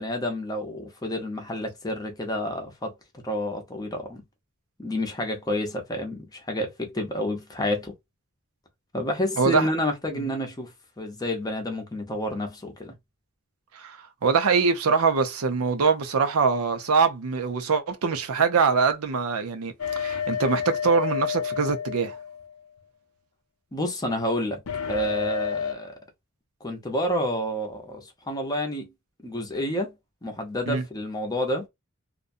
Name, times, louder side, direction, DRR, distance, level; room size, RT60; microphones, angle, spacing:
voice 1, 0.0-2.9 3.2-4.2 4.8-7.9 8.9-12.9 23.7-24.6 24.9-25.9 26.6-28.9 29.2-29.9 30.2-31.7, left 1 dB, 15° left, 0.6 m, -29 dB
voice 2, 9.4-9.7 13.7-22.2 30.7-30.8, right 5 dB, 75° right, 0.5 m, -23 dB
sound 1, 19.8-22.8 24.7-25.7, left 7 dB, 85° left, 0.6 m, -30 dB
2.5 x 2.2 x 2.5 m
head